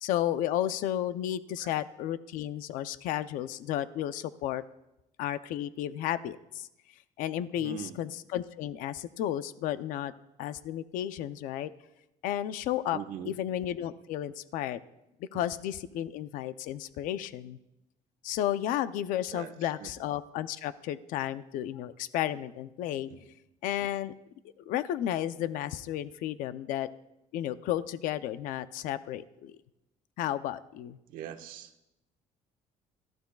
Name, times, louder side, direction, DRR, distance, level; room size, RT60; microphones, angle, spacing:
voice 1, 0.0-4.6 5.2-6.7 7.2-10.1 10.4-11.7 12.2-13.0 13.3-14.8 15.3-17.6 18.2-23.1 23.6-24.1 24.7-26.9 27.3-29.6 30.2-31.0, left 12 dB, 80° left, 12 dB, 0.6 m, -33 dB
voice 2, 7.5-8.0 12.9-13.4 19.3-19.9 23.1-23.2 31.1-31.7, right 9 dB, 85° right, 6 dB, 1.3 m, -41 dB
29.0 x 14.5 x 2.3 m, 0.91 s
cardioid pair, 130°, 14 cm